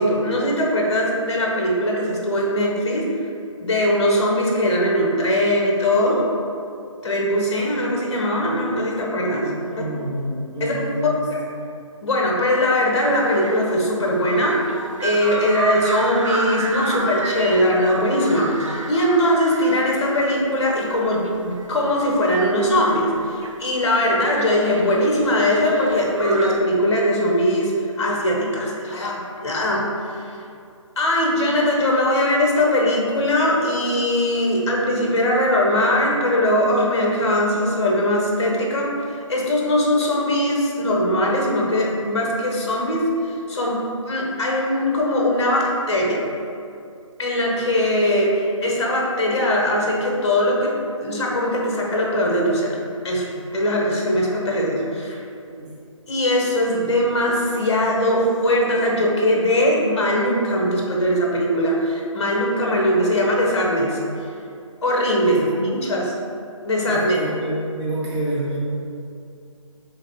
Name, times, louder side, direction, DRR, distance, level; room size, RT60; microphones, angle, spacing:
voice 1, 0.0-3.1 3.6-6.3 7.0-9.5 10.6-10.8 11.3-11.4 12.0-14.6 15.0-30.2 31.0-38.9 39.3-46.2 47.2-52.8 53.0-53.3 53.5-55.2 56.1-64.0 64.8-65.5 65.8-66.1 66.6-67.2, left 1 dB, 55° left, -2 dB, 1.1 m, -20 dB
voice 2, 9.4-11.3 55.5-55.7 65.2-65.9 66.9-68.6, right 1 dB, 15° right, -7 dB, 0.7 m, -28 dB
sound 1, 13.2-26.6, right 2 dB, 70° right, 0.6 m, -31 dB
3.9 x 3.2 x 4.0 m, 2.5 s
figure-of-eight pair, 150°, 17 cm